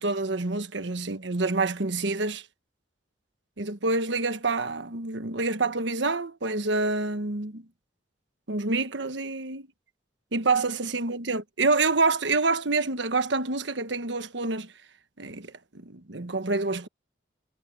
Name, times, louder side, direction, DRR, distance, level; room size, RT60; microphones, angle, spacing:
voice 1, 0.0-2.4 3.6-7.6 8.5-9.7 10.3-14.7 15.2-16.9, right 3 dB, 75° right, 1.3 m, -27 dB
head